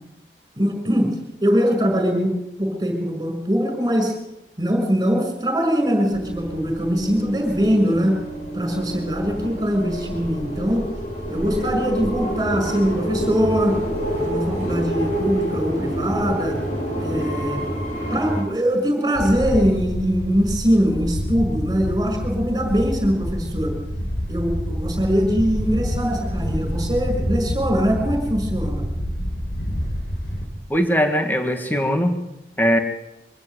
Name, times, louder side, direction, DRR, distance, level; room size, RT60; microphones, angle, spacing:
voice 1, 0.6-1.1 1.4-4.1 4.6-8.2 8.5-10.9 11.3-13.8 14.2-16.6 17.0-17.6 18.1-23.7 24.3-28.8, equal, 20° right, 4 dB, 5.8 m, -22 dB
sound 1, 6.1-18.4, right 1 dB, 40° left, 6.9 m, -28 dB
Wind, 19.1-30.5, equal, 55° left, 4.8 m, -27 dB
voice 2, 30.7-32.2 32.6-32.8, equal, 10° left, 5 dB, 2.0 m, -20 dB
24.0 x 14.5 x 8.2 m, 0.88 s
head